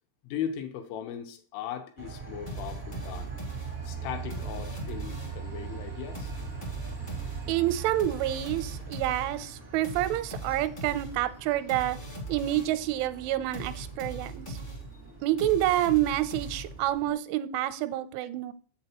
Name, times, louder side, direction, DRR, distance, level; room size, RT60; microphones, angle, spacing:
voice 1, 0.2-3.3 3.8-6.3, left 9 dB, 85° left, 4 dB, 3.6 m, -38 dB
Train, 2.0-17.1, right 6 dB, 65° right, 0.6 m, -42 dB
sound 1, 2.5-5.5 6.1-12.9 13.5-17.0, right 1 dB, 30° left, 0.7 m, -40 dB
voice 2, 7.5-12.0 12.3-14.6 15.2-18.5, right 13 dB, 85° right, 13 dB, 3.0 m, -28 dB
7.9 x 7.3 x 2.9 m, 0.42 s
omnidirectional pair, 5.5 m